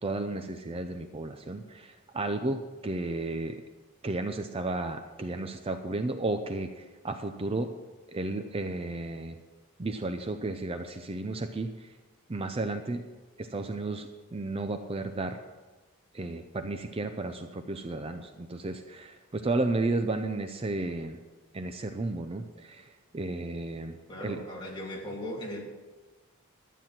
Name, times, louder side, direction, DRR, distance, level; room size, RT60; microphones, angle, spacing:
voice 1, 0.0-3.6 4.0-7.7 8.1-9.4 9.8-11.9 12.3-13.0 13.4-15.4 16.1-21.2 21.5-24.4, right 2 dB, 25° right, 7 dB, 0.5 m, -33 dB
voice 2, 24.1-25.6, left 1 dB, 20° left, -3 dB, 2.8 m, -38 dB
12.5 x 9.1 x 5.9 m, 1.2 s
head